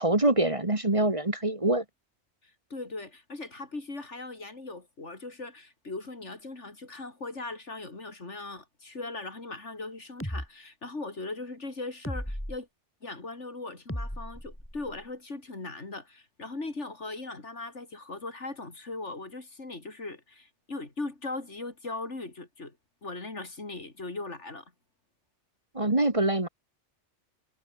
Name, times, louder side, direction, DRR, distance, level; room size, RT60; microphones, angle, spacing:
voice 1, 0.0-1.8 25.7-26.5, right 1 dB, 30° right, 2.2 m, -24 dB
voice 2, 2.7-12.7 13.0-22.8 23.0-24.7, left 2 dB, 80° left, 4.0 m, -39 dB
sound 1, 10.2-10.5 12.0-12.6 13.9-15.0, equal, 10° left, 6.8 m, -35 dB
omnidirectional pair, 1.2 m